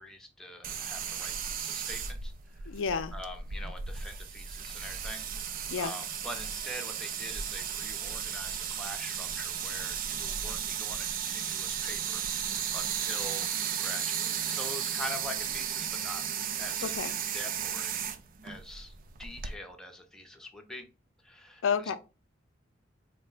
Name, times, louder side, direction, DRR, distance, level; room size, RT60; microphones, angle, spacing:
voice 1, 0.0-2.7 3.1-5.2 5.8-16.2 16.6-18.0 18.4-18.9 19.2-20.9 21.2-22.0, left 1 dB, 5° left, 0.6 m, -44 dB
sound 1, 0.6-19.6, right 8 dB, 45° right, 0.4 m, -35 dB
voice 2, 2.7-3.1 5.7-5.9 16.8-17.1 21.6-22.0, left 6 dB, 85° left, 0.4 m, -30 dB
4.0 x 2.1 x 3.8 m
head